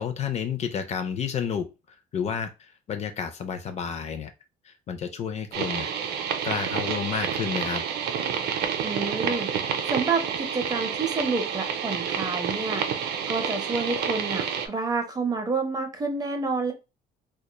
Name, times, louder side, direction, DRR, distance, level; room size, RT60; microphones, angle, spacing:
voice 1, 0.0-4.3 4.6-5.9 6.4-7.8, left 7 dB, 40° left, 0.4 m, -31 dB
sound 1, 5.5-14.7, right 7 dB, 75° right, 0.5 m, -29 dB
voice 2, 8.8-9.5 9.9-12.9 13.3-16.7, right 4 dB, 20° right, 0.6 m, -29 dB
2.8 x 2.2 x 2.2 m
cardioid pair, 110°, 17 cm